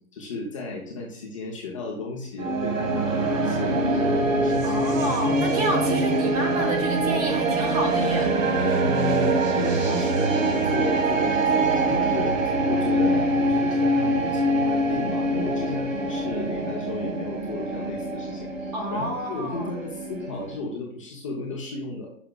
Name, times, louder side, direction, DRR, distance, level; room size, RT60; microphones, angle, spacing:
voice 1, 0.1-4.8 8.8-22.1, left 3 dB, 25° left, -2 dB, 0.6 m, -34 dB
sound 1, 2.4-20.6, right 2 dB, 65° right, 1.5 m, -24 dB
voice 2, 4.6-8.3 18.7-19.7, right 1 dB, 25° right, 3 dB, 1.1 m, -29 dB
9.6 x 5.9 x 2.2 m, 0.65 s
hypercardioid pair, 170°, 42 cm